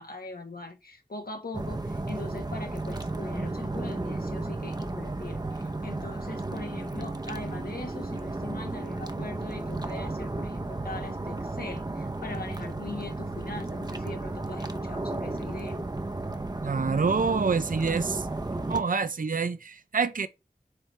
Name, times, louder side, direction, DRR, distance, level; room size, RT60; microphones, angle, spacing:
voice 1, 0.0-15.8, left 3 dB, 80° left, 1.6 m, -41 dB
sound 1, 1.5-18.8, right 2 dB, 25° right, 0.8 m, -33 dB
voice 2, 16.6-18.3 18.7-20.3, right 5 dB, 65° right, 0.6 m, -27 dB
7.8 x 4.4 x 3.3 m
wide cardioid pair, 45°, 15 cm